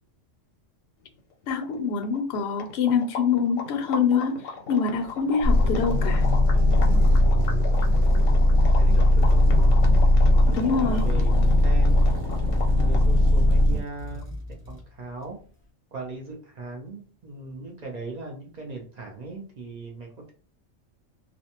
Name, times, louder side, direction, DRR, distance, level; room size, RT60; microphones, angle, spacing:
sound 1, 1.2-1.3 1.4-13.2, left 5 dB, 85° left, 1.0 m, -38 dB
voice 1, 1.5-6.3 10.5-11.1, left 5 dB, 65° left, 7 dB, 0.7 m, -25 dB
sound 2, 5.0-15.5, left 2 dB, 15° left, 0.5 m, -41 dB
sound 3, 5.4-13.8, left 1 dB, 70° right, 0.9 m, -19 dB
voice 2, 8.8-9.8 10.5-12.2 12.8-14.3 14.7-15.4 15.9-20.3, right 2 dB, 55° right, 0 dB, 0.5 m, -38 dB
2.5 x 2.1 x 2.8 m, 0.40 s
omnidirectional pair, 1.3 m